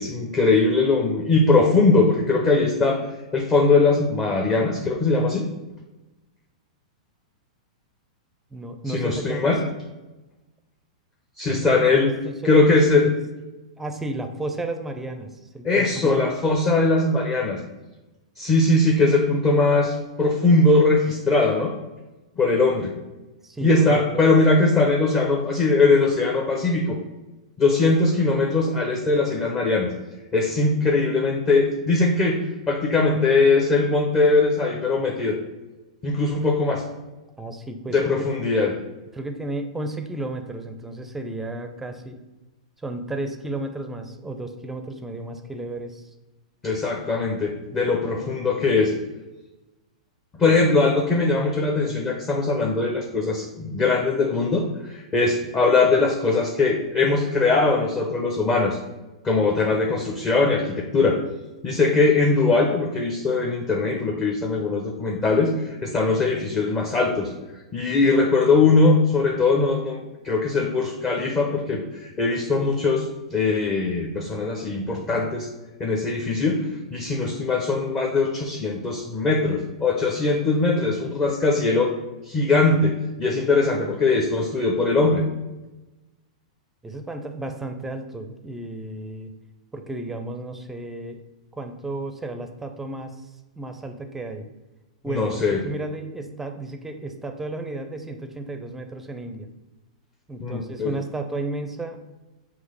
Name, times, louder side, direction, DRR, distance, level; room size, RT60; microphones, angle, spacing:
voice 1, 0.0-3.0 3.3-5.5 8.9-9.6 11.4-12.1 12.4-13.1 15.6-17.6 18.4-21.7 22.4-22.9 23.6-27.0 27.6-29.9 30.3-32.4 32.7-35.4 36.0-36.8 37.9-38.8 46.6-48.9 50.3-58.8 59.2-61.2 61.6-67.3 67.7-70.0 70.2-73.1 73.3-75.5 75.8-81.9 82.2-85.2 95.0-95.6 100.4-100.9, left 3 dB, 25° left, 1 dB, 0.8 m, -20 dB
voice 2, 8.5-9.7 11.6-13.1 13.8-16.3 23.4-24.0 37.4-38.3 39.1-42.2 42.8-46.1 47.7-48.3 86.8-89.3 89.7-91.2 91.5-93.1 93.6-94.5 95.0-99.5 100.3-102.0, right 2 dB, 10° right, 6 dB, 0.6 m, -33 dB
5.8 x 3.0 x 5.6 m, 1.1 s
figure-of-eight pair, 100°, 3 cm